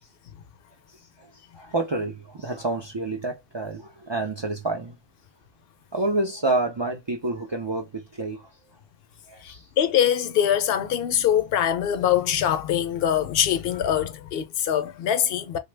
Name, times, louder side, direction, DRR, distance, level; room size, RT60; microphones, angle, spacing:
voice 1, 1.5-5.0 5.9-8.5 9.3-9.6, right 2 dB, 35° right, 0.4 m, -28 dB
voice 2, 9.4-15.6, left 10 dB, 70° left, 0.7 m, -23 dB
2.9 x 2.2 x 3.3 m
omnidirectional pair, 1.1 m